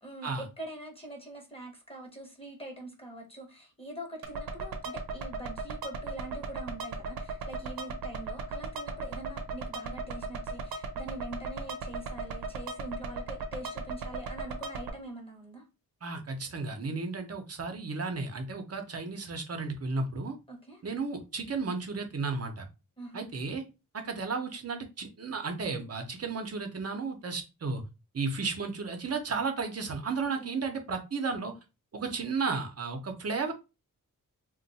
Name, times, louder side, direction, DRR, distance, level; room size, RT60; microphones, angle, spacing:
voice 1, 0.0-15.6 20.5-20.8 23.0-23.2 30.2-30.6, right 1 dB, 15° left, 1 dB, 1.0 m, -44 dB
sound 1, 4.2-14.9, right 3 dB, 90° right, 0.7 m, -37 dB
voice 2, 16.0-20.4 20.8-22.7 23.1-23.6 23.9-27.8 28.1-31.5 31.9-33.5, right 4 dB, 45° right, 5 dB, 0.8 m, -33 dB
2.5 x 2.2 x 4.0 m, 0.27 s
wide cardioid pair, 90°, 34 cm